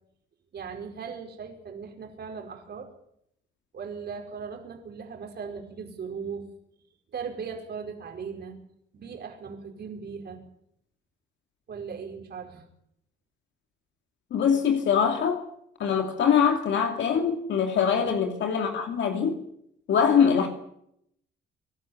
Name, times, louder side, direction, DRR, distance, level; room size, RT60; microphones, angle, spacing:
voice 1, 0.5-2.9 3.7-6.4 7.1-8.6 8.9-10.4 11.7-12.6 18.0-18.2 20.0-20.2, right 6 dB, 55° right, 5.1 m, -38 dB
voice 2, 14.3-15.4 15.8-19.4 19.9-20.5, left 7 dB, 70° left, 2.6 m, -23 dB
25.0 x 12.5 x 9.6 m
cardioid pair, 90°, 20 cm